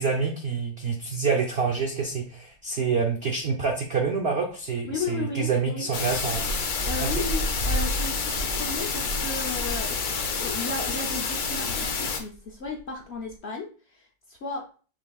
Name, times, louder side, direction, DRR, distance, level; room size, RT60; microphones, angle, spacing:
voice 1, 0.0-6.4 7.0-7.1, right 5 dB, 85° right, 2 dB, 0.5 m, -27 dB
sound 1, 2.1-2.2 2.5-2.6 2.9-3.4 4.0-4.2 4.5-4.6 5.4-5.5 6.1-10.9 11.2-12.9 13.2-13.4, equal, 45° right, 1.8 m, -33 dB
voice 2, 4.9-5.9 6.8-14.7, left 4 dB, 70° left, 0 dB, 0.6 m, -35 dB
sound 2, 5.9-12.2, left 5 dB, 55° left, 1.2 m, -29 dB
6.1 x 3.5 x 2.3 m, 0.39 s
omnidirectional pair, 1.9 m